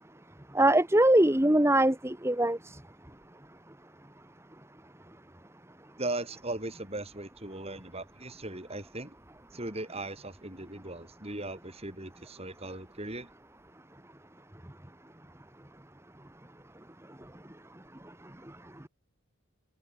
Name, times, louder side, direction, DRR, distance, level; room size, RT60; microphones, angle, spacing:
voice 1, 0.5-2.6, right 1 dB, 10° right, 1.5 m, -22 dB
voice 2, 6.0-9.2 9.5-13.3, right 2 dB, 30° right, 3.8 m, -38 dB
head